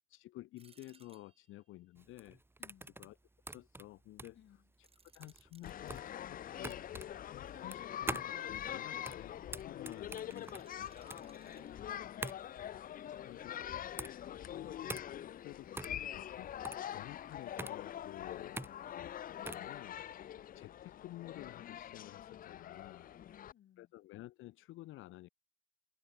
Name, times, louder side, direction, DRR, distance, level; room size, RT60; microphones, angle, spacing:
voice 1, 0.1-2.4 3.0-3.1 3.4-4.4 4.8-4.9 5.1-6.8 7.3-9.4 9.6-10.9 13.2-13.5 14.5-15.0 15.4-19.1 19.4-20.0 20.5-23.1 23.8-25.3, left 16 dB, 90° left, 1.4 m, -52 dB
sound 1, 0.6-1.7 4.7-6.0 9.9-12.2, right 4 dB, 30° right, 2.2 m, -65 dB
sound 2, 2.0-19.7, right 2 dB, 10° right, 0.9 m, -46 dB
voice 2, 2.6-2.9 4.3-4.7 11.2-12.5 12.9-13.4 14.1-14.3 23.1-23.9, left 11 dB, 70° left, 5.2 m, -61 dB
sound 3, 5.6-23.5, left 10 dB, 45° left, 0.4 m, -44 dB
cardioid pair, 90°, 20 cm